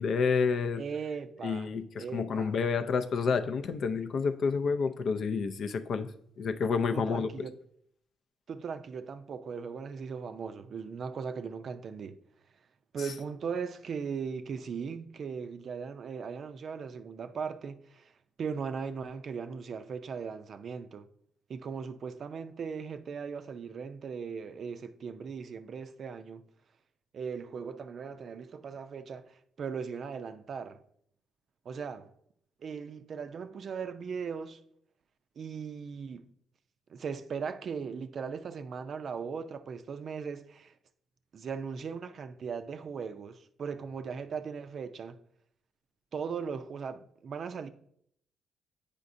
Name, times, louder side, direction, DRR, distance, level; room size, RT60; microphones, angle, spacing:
voice 1, 0.0-0.8 1.4-6.1 6.4-7.3, left 5 dB, 60° left, 0.4 m, -29 dB
voice 2, 0.8-1.7 2.0-2.5 6.9-7.5 8.5-12.2 12.9-18.1 18.4-21.1 21.5-26.4 27.1-30.8 31.7-32.1 32.6-34.6 35.4-36.3 36.9-40.8 41.3-45.2 46.1-47.7, right 6 dB, 55° right, 0.4 m, -38 dB
8.3 x 5.0 x 2.6 m
cardioid pair, 90°, 0 cm